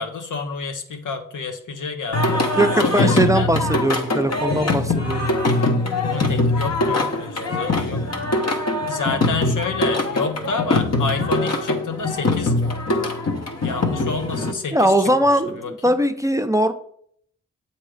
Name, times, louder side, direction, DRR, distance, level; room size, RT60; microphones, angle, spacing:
voice 1, 0.0-3.5 6.1-8.2 8.9-12.6 13.6-15.1 15.5-15.9, left 4 dB, 75° left, 6 dB, 0.9 m, -29 dB
Singing, 2.1-14.5, left 2 dB, 55° left, 1.1 m, -22 dB
voice 2, 2.6-5.3 14.7-16.7, right 1 dB, 10° right, 7 dB, 0.5 m, -20 dB
7.6 x 2.8 x 4.8 m, 0.64 s
cardioid pair, 40°, 31 cm